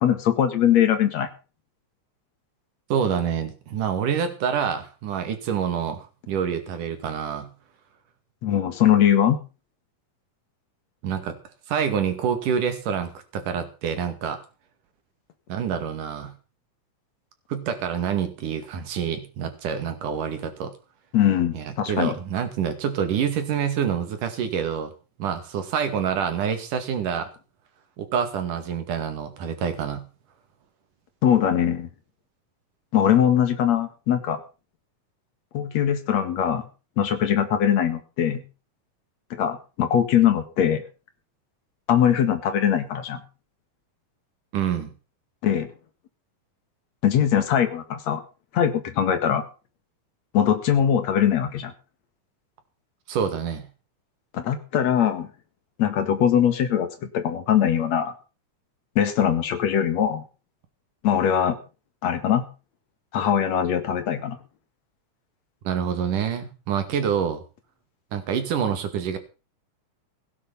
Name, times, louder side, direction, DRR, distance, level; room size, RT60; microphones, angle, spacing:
voice 1, 0.0-1.3 8.4-9.4 21.1-22.2 31.2-31.9 32.9-34.4 35.5-36.7 37.0-38.4 39.4-40.8 41.9-43.2 45.4-45.7 47.0-48.2 48.5-49.4 50.3-51.7 54.3-55.3 55.8-58.1 59.0-60.2 61.0-61.6 62.0-62.4 63.1-64.4, left 9 dB, 60° left, 9 dB, 3.0 m, -21 dB
voice 2, 2.9-7.5 11.0-11.4 11.7-14.4 15.5-16.3 17.5-20.7 21.5-24.9 25.2-27.3 28.0-30.0 44.5-44.9 53.1-53.7 65.7-67.4 68.1-69.2, right 7 dB, 90° right, 8 dB, 3.8 m, -27 dB
16.5 x 9.5 x 5.7 m, 0.34 s
omnidirectional pair, 3.6 m